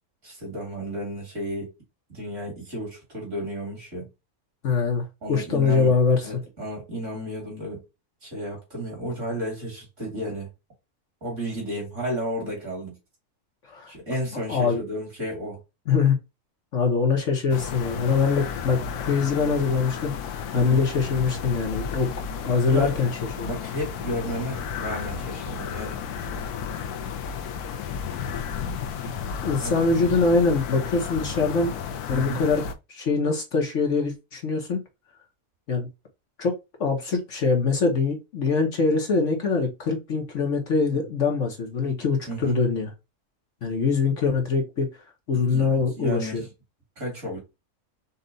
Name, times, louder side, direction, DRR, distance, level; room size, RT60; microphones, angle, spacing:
voice 1, 0.2-1.7 2.1-4.1 5.2-5.9 6.2-7.8 8.2-10.5 11.2-13.0 13.9-15.6 20.5-20.9 22.5-23.0 23.3-26.0 29.0-29.2 29.6-29.7 32.1-32.4 40.9-41.0 42.3-42.6 45.3-46.5 47.0-47.4, equal, 50° right, 2.9 m, -33 dB
voice 2, 4.6-6.4 13.7-13.9 14.5-14.8 15.9-16.2 16.7-20.1 20.5-22.1 22.4-23.1 23.4-23.5 29.4-31.7 32.1-32.6 32.9-34.8 35.7-35.9 36.4-36.5 36.8-42.9 43.6-44.9 45.3-46.4, left 4 dB, 60° left, 1.2 m, -23 dB
sound 1, 17.5-32.7, left 7 dB, 85° left, 1.2 m, -33 dB
5.5 x 2.4 x 3.9 m
omnidirectional pair, 1.6 m